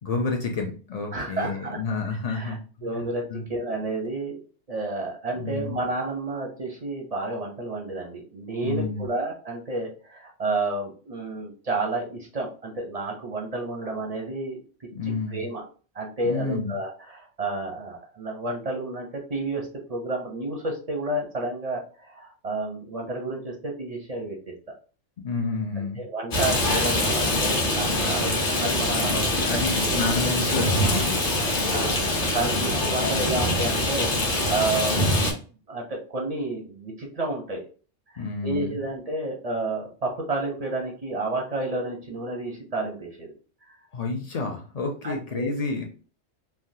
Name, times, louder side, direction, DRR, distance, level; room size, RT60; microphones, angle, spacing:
voice 1, 0.0-3.0 3.3-3.4 5.4-5.8 8.6-9.1 14.9-15.4 16.2-16.8 25.2-26.0 29.1-31.4 32.6-32.7 33.0-33.2 38.2-38.8 43.9-45.8, left 4 dB, 65° left, 2 dB, 0.3 m, -30 dB
voice 2, 1.1-1.8 2.3-4.4 4.7-14.6 15.3-15.6 15.9-24.4 25.8-29.6 30.0-30.2 31.3-35.1 35.7-37.6 38.1-43.3 43.6-43.8 45.0-45.5, right 2 dB, 45° right, 0 dB, 0.5 m, -31 dB
Rain, 26.3-35.3, left 1 dB, 50° left, 1.0 m, -24 dB
3.3 x 2.2 x 2.6 m, 0.38 s
omnidirectional pair, 1.3 m